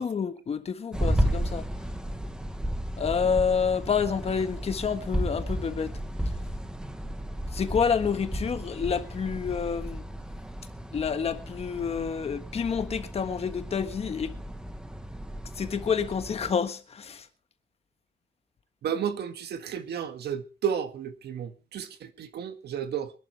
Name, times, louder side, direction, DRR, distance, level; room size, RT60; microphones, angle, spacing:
voice 1, 0.0-1.7 3.0-6.0 7.5-10.0 10.9-14.3 15.6-17.3, left 6 dB, 40° left, 1.4 m, -28 dB
sound 1, 0.9-16.5, right 1 dB, 5° right, 1.0 m, -33 dB
voice 2, 18.8-23.1, right 8 dB, 80° right, 1.8 m, -32 dB
24.5 x 11.0 x 3.3 m
wide cardioid pair, 170°, 17 cm